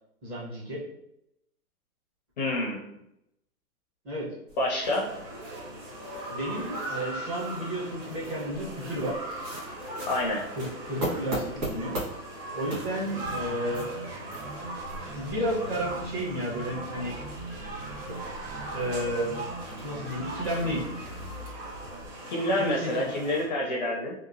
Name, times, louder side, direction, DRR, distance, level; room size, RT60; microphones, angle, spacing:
voice 1, 0.2-0.8 4.0-4.3 6.3-9.1 10.6-12.0 12.5-13.9 15.1-17.1 18.1-18.2 18.7-19.4 19.8-20.8 22.6-23.1, equal, 25° right, -4 dB, 0.7 m, -32 dB
voice 2, 2.4-2.8 4.6-5.1 10.0-10.4 22.3-24.1, left 1 dB, 35° left, -2 dB, 0.4 m, -27 dB
sound 1, 4.5-22.1, right 1 dB, 80° right, 1.3 m, -42 dB
sound 2, 4.8-23.4, right 1 dB, 40° right, 1.2 m, -39 dB
sound 3, 12.9-21.4, right 2 dB, 55° right, 0.8 m, -43 dB
2.9 x 2.4 x 2.5 m, 0.83 s
hypercardioid pair, 135°, 43 cm